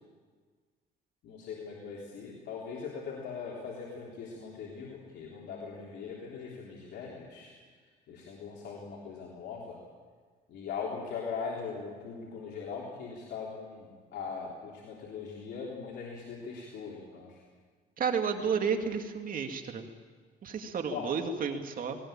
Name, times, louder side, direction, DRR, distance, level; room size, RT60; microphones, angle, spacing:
voice 1, 1.2-7.5 8.1-9.8 10.5-17.4 18.4-18.5 20.9-21.1, left 5 dB, 75° left, -3 dB, 3.5 m, -40 dB
voice 2, 18.0-19.8 20.4-22.0, right 6 dB, 50° right, 4 dB, 2.4 m, -31 dB
19.0 x 19.0 x 8.9 m, 1.5 s
cardioid pair, 110°, 18 cm